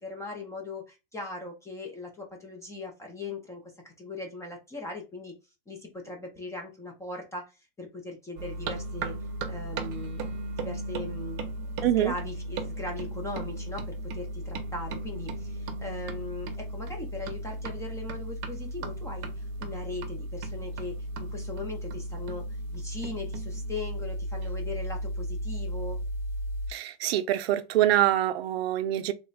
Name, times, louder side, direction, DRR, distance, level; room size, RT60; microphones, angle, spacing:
voice 1, 0.0-5.4 5.7-9.1 9.5-11.5 11.8-22.4 22.7-26.0, left 2 dB, 10° left, 0.6 m, -39 dB
sound 1, 8.4-26.7, right 1 dB, 40° right, 0.7 m, -35 dB
voice 2, 11.8-12.1 26.7-29.1, right 13 dB, 80° right, 0.5 m, -25 dB
3.2 x 2.1 x 3.9 m
supercardioid pair, 135°, 30 cm